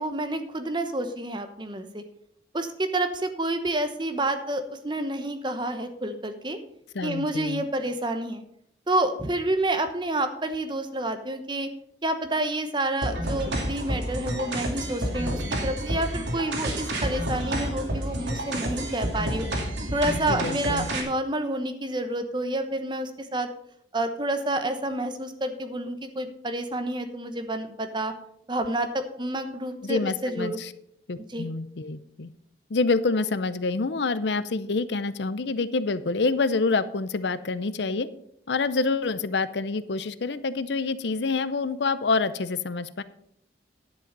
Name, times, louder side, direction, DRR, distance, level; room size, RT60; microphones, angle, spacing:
voice 1, 0.0-2.0 2.5-6.6 7.0-8.4 8.9-11.7 12.0-19.5 19.9-23.5 23.9-28.1 28.5-30.6 31.3-31.5, right 1 dB, 25° right, 7 dB, 1.0 m, -29 dB
voice 2, 6.9-7.7 20.3-20.9 29.8-30.7 31.1-32.3 32.7-38.1 38.5-43.0, left 3 dB, 70° left, 14 dB, 0.6 m, -27 dB
sound 1, 13.0-21.0, right 1 dB, 75° right, 2.5 m, -30 dB
10.5 x 7.8 x 5.4 m, 0.71 s
head